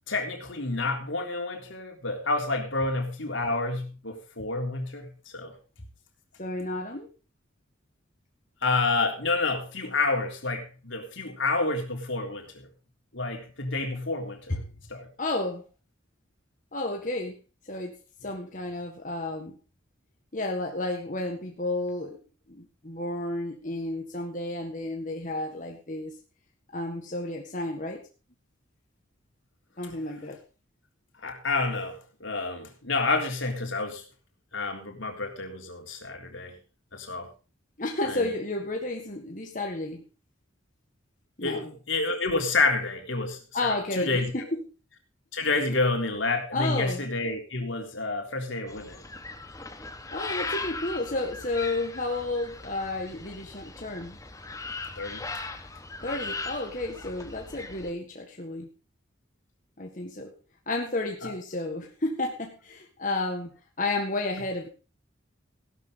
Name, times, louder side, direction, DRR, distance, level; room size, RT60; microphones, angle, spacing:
voice 1, 0.1-5.5 8.6-12.7 13.1-14.6 14.9-15.1 31.2-34.0 34.5-36.6 36.9-37.3 38.1-38.3 41.4-44.3 45.3-49.0 55.0-55.3 61.2-61.3, left 3 dB, 75° left, 3.6 m, -29 dB
voice 2, 6.4-7.1 14.5-14.6 15.2-15.7 16.7-17.4 17.6-19.6 20.3-22.2 22.5-26.2 26.7-28.1 29.8-30.4 37.8-40.1 41.4-41.7 43.5-44.7 45.7-45.8 46.5-47.0 50.1-54.2 56.0-58.7 59.8-60.4 60.7-64.7, left 2 dB, 40° left, 1.8 m, -32 dB
sound 1, 48.7-57.9, left 3 dB, 15° left, 1.3 m, -39 dB
16.0 x 12.0 x 3.9 m
head